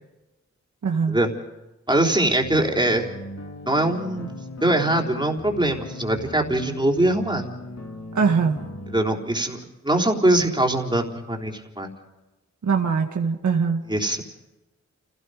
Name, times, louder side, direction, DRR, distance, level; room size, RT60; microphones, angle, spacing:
voice 1, 0.8-1.2 8.2-8.7 12.6-13.8, right 5 dB, 85° right, 2 dB, 1.9 m, -22 dB
voice 2, 1.9-3.1 3.7-4.3 4.6-7.4 8.9-11.9 13.9-14.2, right 1 dB, 15° right, 1 dB, 3.8 m, -22 dB
sound 1, 2.4-9.0, left 1 dB, 60° left, 3.0 m, -38 dB
29.5 x 17.5 x 5.1 m, 1.0 s
wide cardioid pair, 75°, 29 cm